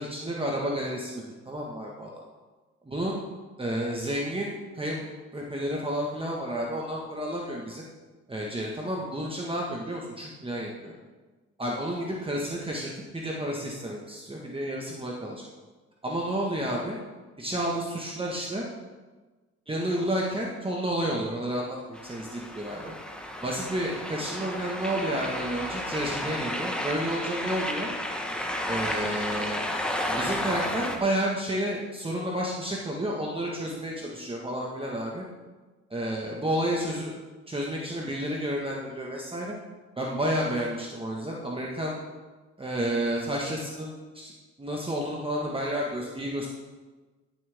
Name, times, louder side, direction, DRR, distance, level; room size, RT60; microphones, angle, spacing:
voice 1, 0.0-2.1 2.8-3.2 3.6-5.0 5.3-7.8 8.3-10.9 11.6-15.4 16.0-17.0 17.4-18.6 19.7-22.9 23.4-27.9 28.7-29.7 30.1-35.2 35.9-37.1 37.5-39.6 40.0-42.0 42.6-44.3 44.6-46.5, right 1 dB, 20° right, -2 dB, 1.5 m, -31 dB
sound 1, 21.9-31.0, left 1 dB, 5° left, 1.3 m, -32 dB
15.0 x 7.6 x 3.6 m, 1.3 s
cardioid pair, 90°, 30 cm